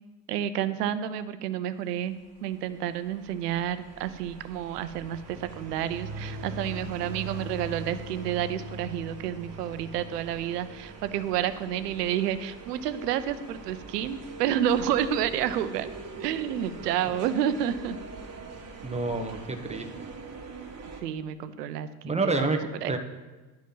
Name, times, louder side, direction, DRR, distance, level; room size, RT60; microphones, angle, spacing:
voice 1, 0.3-2.2 2.4-15.9 16.2-18.0 21.0-23.0, right 10 dB, 80° right, 12 dB, 0.8 m, -30 dB
sound 1, 2.1-21.0, right 4 dB, 30° right, 2.0 m, -45 dB
sound 2, 5.0-11.5, right 1 dB, 60° right, 1.4 m, -41 dB
voice 2, 18.8-19.9 22.0-23.0, right 3 dB, 15° right, 4 dB, 1.3 m, -28 dB
11.5 x 5.1 x 5.8 m, 1.2 s
hypercardioid pair, 65°, 47 cm